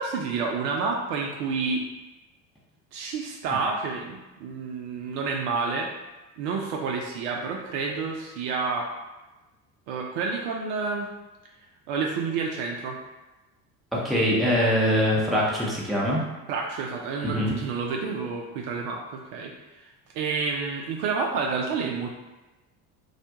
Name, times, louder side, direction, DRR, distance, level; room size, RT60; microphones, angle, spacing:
voice 1, 0.0-1.8 2.9-5.9 6.4-8.9 9.9-11.1 11.9-13.0 16.5-19.8 20.1-22.1, right 4 dB, 55° right, 0 dB, 0.5 m, -29 dB
voice 2, 13.9-16.2 17.2-17.5, equal, ahead, -5 dB, 0.7 m, -23 dB
2.4 x 2.1 x 2.8 m, 1.1 s
hypercardioid pair, 60°, 48 cm